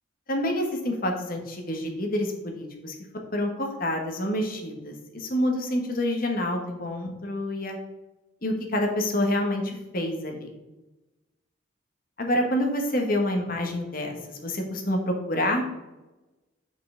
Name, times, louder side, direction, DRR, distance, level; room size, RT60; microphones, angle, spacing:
voice 1, 0.3-2.9 3.3-7.8 8.4-10.5 12.2-15.6, left 1 dB, 45° left, 2 dB, 1.2 m, -27 dB
7.6 x 5.5 x 3.8 m, 1.1 s
head